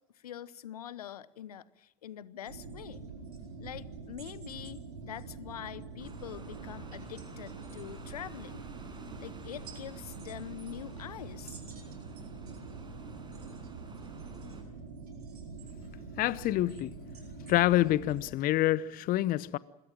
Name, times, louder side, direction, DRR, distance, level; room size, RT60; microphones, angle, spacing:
voice 1, 0.1-3.0 3.6-8.7 9.2-11.6, left 10 dB, 80° left, 1.0 m, -44 dB
sound 1, 2.5-18.2, right 4 dB, 85° right, 4.8 m, -45 dB
sound 2, 6.0-14.6, right 3 dB, 25° right, 5.7 m, -52 dB
voice 2, 16.2-16.9 17.5-19.6, left 15 dB, 50° left, 0.9 m, -27 dB
26.0 x 21.5 x 7.4 m
hypercardioid pair, 70°, 19 cm